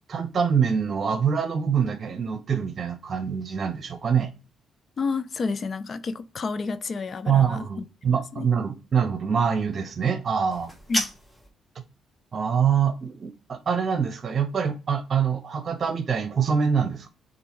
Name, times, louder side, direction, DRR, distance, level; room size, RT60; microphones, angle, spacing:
voice 1, 0.1-4.3 7.3-10.7 12.3-17.1, right 7 dB, 45° right, 0.9 m, -25 dB
voice 2, 5.0-7.9 8.3-8.5 10.9-11.1, left 4 dB, 45° left, 0.4 m, -30 dB
sound 1, 10.5-11.5, left 1 dB, 15° left, 1.2 m, -31 dB
6.7 x 2.6 x 3.0 m
cardioid pair, 90°, 0 cm